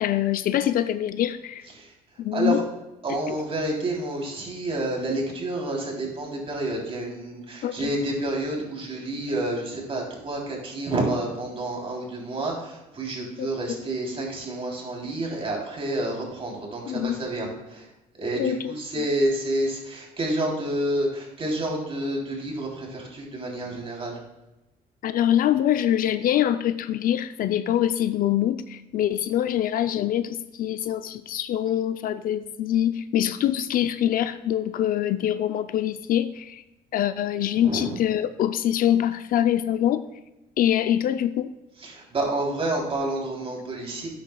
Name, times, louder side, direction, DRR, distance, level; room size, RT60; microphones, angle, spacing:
voice 1, 0.0-1.7 2.2-2.6 3.3-3.4 7.6-7.9 13.4-13.8 16.9-17.2 18.4-19.1 25.0-36.6 36.9-40.1 40.6-41.5, left 11 dB, 55° left, 12 dB, 0.5 m, -24 dB
voice 2, 2.3-2.6 3.0-17.9 18.2-24.2 37.5-38.0 41.8-44.1, right 1 dB, 35° right, -1 dB, 3.2 m, -29 dB
12.0 x 8.5 x 2.3 m, 0.97 s
cardioid pair, 110°, 17 cm